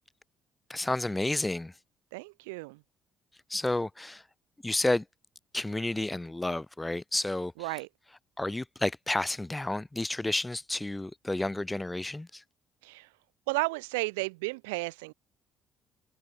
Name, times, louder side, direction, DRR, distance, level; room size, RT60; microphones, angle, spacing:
voice 1, 0.7-1.7 3.5-4.2 4.6-5.1 5.5-7.5 8.4-12.4, left 2 dB, 15° left, 0.6 m, -31 dB
voice 2, 2.1-2.8 7.6-7.9 12.8-13.1 13.5-15.1, right 26 dB, 85° right, 0.5 m, -33 dB
hypercardioid pair, 60°, 0 cm